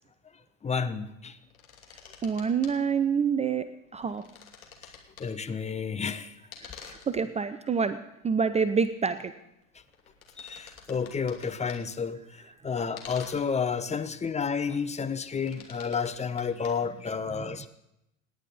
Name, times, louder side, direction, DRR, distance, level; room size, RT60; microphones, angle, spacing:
voice 1, 0.6-1.4 4.8-4.9 5.2-6.4 10.4-17.7, left 6 dB, 15° left, 9 dB, 0.8 m, -31 dB
sound 1, 1.3-2.7 3.9-5.4 6.5-7.2 8.5-8.9 9.6-12.0 13.0-13.5 15.1-16.7, left 6 dB, 75° left, 2.7 m, -49 dB
voice 2, 2.2-3.7 3.9-4.2 6.6-8.0 8.2-9.3 12.4-12.5 17.3-17.6, right 6 dB, 15° right, 12 dB, 0.6 m, -27 dB
28.0 x 10.5 x 4.1 m, 0.85 s
figure-of-eight pair, 75°, 42 cm